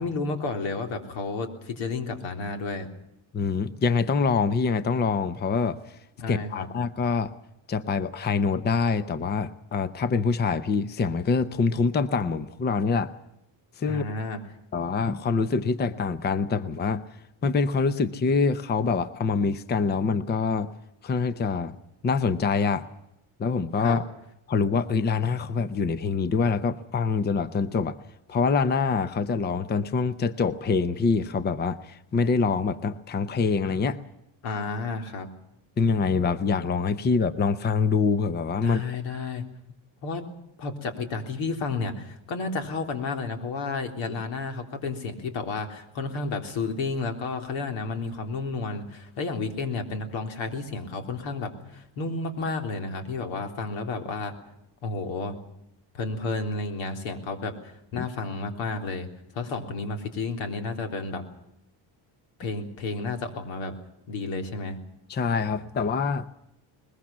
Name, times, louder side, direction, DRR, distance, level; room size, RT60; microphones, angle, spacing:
voice 1, 0.0-2.9 6.2-6.7 13.9-14.4 23.8-24.0 34.4-35.3 38.6-39.4 40.0-40.3 40.6-54.3 54.8-55.4 55.9-59.1 59.3-61.2 62.4-63.8 64.1-64.8, left 3 dB, 80° left, 6 dB, 3.6 m, -31 dB
voice 2, 3.3-5.8 6.3-7.3 7.7-13.1 13.8-14.2 14.7-17.0 17.4-20.7 21.0-21.8 22.0-22.9 23.4-24.0 24.5-28.0 28.3-34.0 35.8-38.8 58.0-58.1 65.1-66.2, left 5 dB, 20° left, 14 dB, 0.7 m, -25 dB
21.0 x 21.0 x 7.3 m, 0.81 s
cardioid pair, 155°, 46 cm